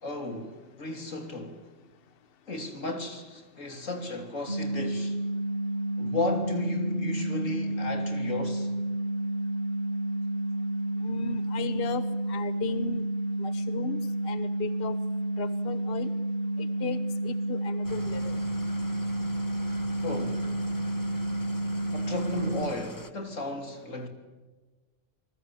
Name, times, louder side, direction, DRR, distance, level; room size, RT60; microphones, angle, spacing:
voice 1, 0.0-1.7 2.5-5.2 6.0-8.7 20.0-20.5 21.9-24.1, left 2 dB, 90° left, 3.6 m, -34 dB
sound 1, 4.5-22.6, right 1 dB, 40° right, 1.5 m, -30 dB
voice 2, 11.0-13.1 13.4-15.0 15.4-16.1 16.6-18.3, left 5 dB, 50° left, 1.3 m, -36 dB
Engine starting / Idling, 17.8-23.1, left 1 dB, 15° left, 1.3 m, -44 dB
27.5 x 21.0 x 8.9 m
omnidirectional pair, 1.3 m